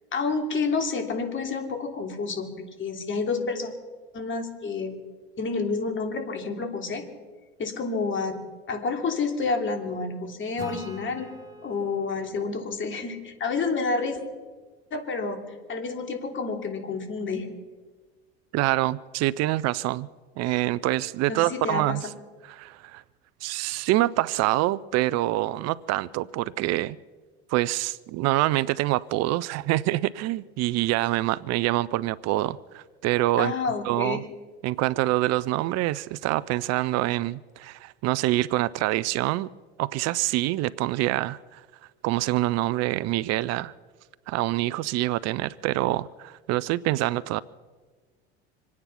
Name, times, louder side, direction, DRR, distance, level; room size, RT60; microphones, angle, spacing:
voice 1, 0.1-3.7 4.1-5.0 5.4-7.0 7.6-8.4 8.7-11.3 11.6-14.2 14.9-17.5 21.3-22.0 33.4-34.2, left 4 dB, 40° left, 3.0 m, -29 dB
Acoustic guitar / Strum, 10.6-14.0, right 1 dB, 10° right, 3.2 m, -45 dB
voice 2, 18.5-20.1 20.4-22.1 22.4-23.0 23.4-27.0 27.5-33.5 33.8-34.3 34.6-39.5 39.8-41.6 42.0-43.7 44.3-47.4, right 17 dB, 55° right, 0.5 m, -26 dB
26.0 x 9.6 x 5.7 m
hypercardioid pair, 80°, 31 cm